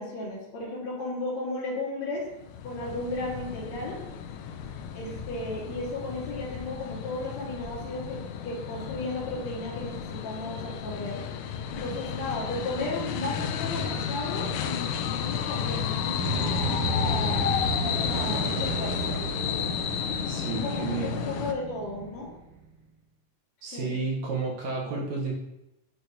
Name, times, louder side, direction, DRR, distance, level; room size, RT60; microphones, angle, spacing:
voice 1, 0.0-2.3 2.6-4.0 4.9-11.2 11.7-17.5 17.8-19.2 20.5-22.3 23.7-24.0, left 2 dB, 60° left, -4 dB, 2.6 m, -35 dB
sound 1, 2.3-21.5, left 8 dB, 90° left, 2.2 m, -32 dB
sound 2, 16.1-22.7, right 5 dB, 85° right, 2.8 m, -34 dB
voice 2, 20.3-21.2 23.6-25.3, right 4 dB, 70° right, -2 dB, 1.9 m, -32 dB
10.0 x 4.4 x 2.6 m, 0.90 s
omnidirectional pair, 3.7 m